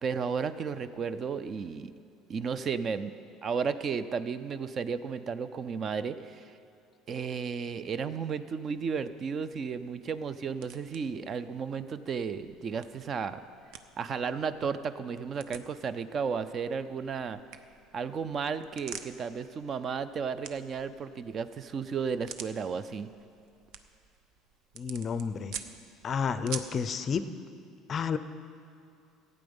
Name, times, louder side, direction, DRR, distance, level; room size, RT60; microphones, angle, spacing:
voice 1, 0.0-1.9 2.3-3.1 3.4-6.4 7.1-13.4 14.0-17.4 17.9-23.1, right 6 dB, 30° right, 13 dB, 0.4 m, -33 dB
sound 1, 8.7-26.9, right 8 dB, 65° right, 0.6 m, -49 dB
voice 2, 24.8-25.5 26.0-27.2 27.9-28.2, left 6 dB, 30° left, 12 dB, 0.5 m, -30 dB
15.5 x 8.6 x 5.4 m, 2.4 s
cardioid pair, 145°, 0 cm